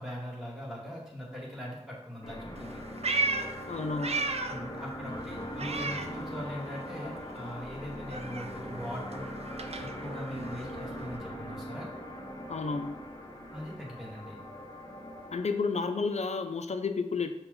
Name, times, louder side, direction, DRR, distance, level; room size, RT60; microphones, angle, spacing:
voice 1, 0.0-2.8 4.5-9.2 9.8-11.9 13.5-14.4, equal, 5° right, -4 dB, 1.4 m, -41 dB
sound 1, 2.2-15.6, equal, 30° left, 0.8 m, -41 dB
Meow, 2.6-4.7 5.0-6.7 7.0-11.2, right 3 dB, 60° right, 0.4 m, -35 dB
voice 2, 3.7-4.2 12.5-13.0 15.3-17.3, left 4 dB, 70° left, 9 dB, 0.4 m, -31 dB
Bowed string instrument, 7.6-11.6, equal, 75° right, 1.0 m, -49 dB
5.7 x 2.3 x 3.8 m, 0.92 s
wide cardioid pair, 40°, 12 cm